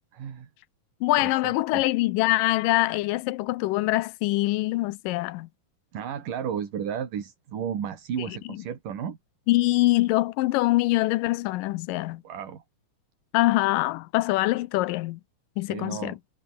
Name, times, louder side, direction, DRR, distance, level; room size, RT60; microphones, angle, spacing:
voice 1, 0.1-0.5 1.2-1.8 5.9-9.2 12.2-12.6 15.6-16.2, right 8 dB, 70° right, 4.3 m, -33 dB
voice 2, 1.0-5.5 8.3-8.4 9.5-12.2 13.3-15.2 15.6-16.2, left 19 dB, 90° left, 2.3 m, -24 dB
omnidirectional pair, 3.9 m